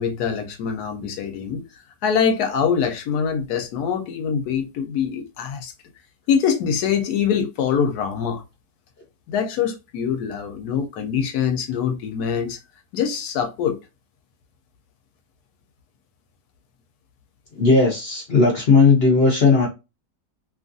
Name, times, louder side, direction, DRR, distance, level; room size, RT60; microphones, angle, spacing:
voice 1, 0.0-1.6 2.0-5.7 6.3-8.4 9.3-12.6 12.9-13.8, left 7 dB, 75° left, 1.1 m, -24 dB
voice 2, 17.6-19.7, left 4 dB, 55° left, 0.7 m, -16 dB
2.9 x 2.4 x 2.5 m
omnidirectional pair, 1.7 m